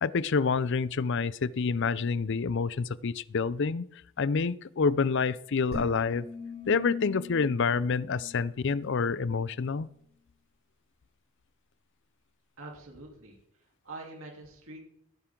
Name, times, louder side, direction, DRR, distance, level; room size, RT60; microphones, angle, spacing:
voice 1, 0.0-3.9 4.2-6.3 6.7-9.9, left 5 dB, 55° left, 19 dB, 0.5 m, -28 dB
sound 1, 5.7-9.1, left 4 dB, 45° right, 4.6 m, -40 dB
voice 2, 12.6-14.8, right 2 dB, 65° right, -1 dB, 3.4 m, -45 dB
17.5 x 10.5 x 3.8 m, 0.73 s
head